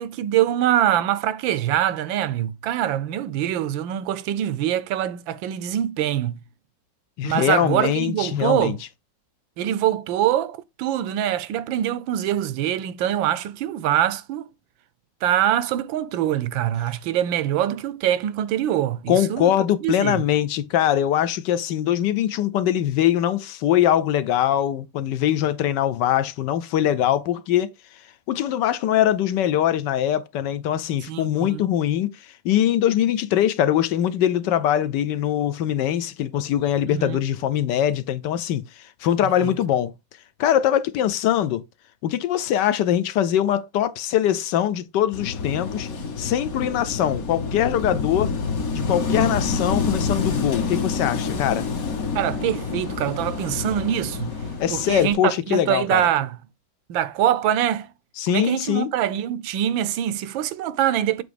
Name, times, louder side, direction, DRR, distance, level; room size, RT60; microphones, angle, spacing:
voice 1, 0.0-6.4 7.2-8.8 9.6-14.5 15.2-20.2 31.1-31.7 36.9-37.2 39.2-39.6 52.1-54.4 54.7-56.4 56.9-57.9 58.3-61.2, right 11 dB, 80° right, 1.4 m, -24 dB
voice 2, 7.2-8.8 19.1-27.7 28.3-32.2 32.4-39.9 40.4-41.6 42.0-45.9 46.2-48.3 48.7-51.7 54.6-56.0 58.2-58.9, left 11 dB, 70° left, 1.2 m, -22 dB
Wind / Waves surf, 45.1-55.1, left 4 dB, 50° left, 1.4 m, -27 dB
7.9 x 3.1 x 5.0 m
omnidirectional pair, 2.1 m